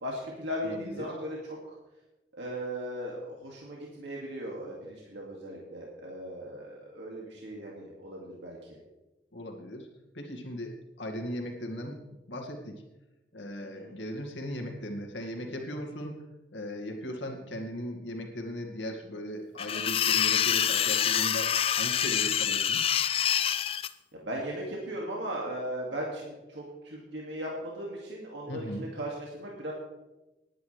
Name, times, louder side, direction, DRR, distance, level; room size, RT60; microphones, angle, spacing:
voice 1, 0.0-1.8 2.3-8.6 13.6-14.0 24.1-29.7, equal, 80° right, -3 dB, 2.3 m, -37 dB
voice 2, 0.6-1.1 9.3-9.9 10.1-12.0 12.3-12.8 13.3-16.3 16.5-22.8 28.5-28.9, equal, 85° left, 1 dB, 2.2 m, -38 dB
sound 1, 19.6-23.9, left 9 dB, 30° left, 0.3 m, -26 dB
19.0 x 10.0 x 3.4 m, 1.0 s
head